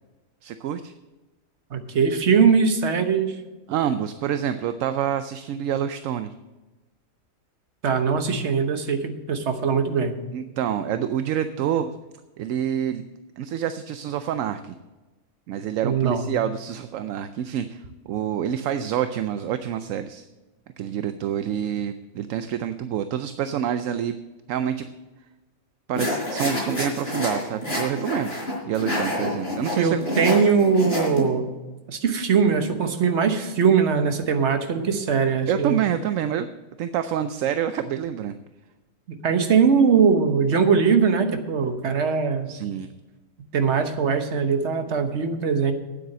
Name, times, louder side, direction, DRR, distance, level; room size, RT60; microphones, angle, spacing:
voice 1, 0.4-0.9 3.7-6.3 10.3-11.9 12.4-13.0 13.4-14.7 15.5-20.2 20.8-24.2 24.5-24.9 25.9-28.4 28.6-30.0 34.9-35.0 35.5-36.5 36.8-38.4 42.5-42.9, right 9 dB, 75° right, 11 dB, 0.9 m, -27 dB
voice 2, 1.7-3.3 7.8-10.2 15.8-16.2 29.8-31.5 31.9-35.8 39.1-42.5 43.5-45.7, right 6 dB, 60° right, 7 dB, 1.3 m, -21 dB
sound 1, 25.9-31.2, left 1 dB, 40° left, 4.2 m, -27 dB
9.4 x 8.2 x 7.3 m, 1.1 s
omnidirectional pair, 1.4 m